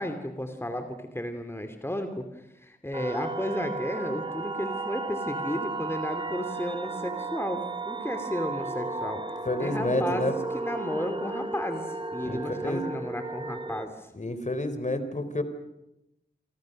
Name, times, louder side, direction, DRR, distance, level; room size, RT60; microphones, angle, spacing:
voice 1, 0.0-10.3 10.5-14.1, left 1 dB, 15° left, 7 dB, 2.9 m, -33 dB
sound 1, 2.9-13.9, right 3 dB, 25° right, 1.7 m, -34 dB
voice 2, 9.5-10.3 12.3-12.8 14.1-15.4, left 1 dB, 40° left, 10 dB, 3.9 m, -29 dB
28.5 x 25.5 x 6.6 m, 0.89 s
cardioid pair, 50°, 19 cm